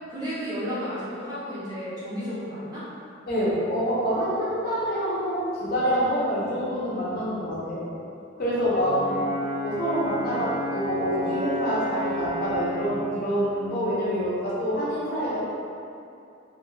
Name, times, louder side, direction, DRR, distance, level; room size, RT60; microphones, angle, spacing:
voice 1, 0.1-2.9 8.8-9.3 10.3-10.4, equal, 20° right, -11 dB, 0.6 m, -33 dB
voice 2, 3.3-7.9 8.4-8.9 9.6-15.4, equal, 45° left, -9 dB, 0.7 m, -26 dB
Brass instrument, 8.8-13.0, equal, 50° right, 0.9 m, -31 dB
2.6 x 2.3 x 3.1 m, 2.6 s
head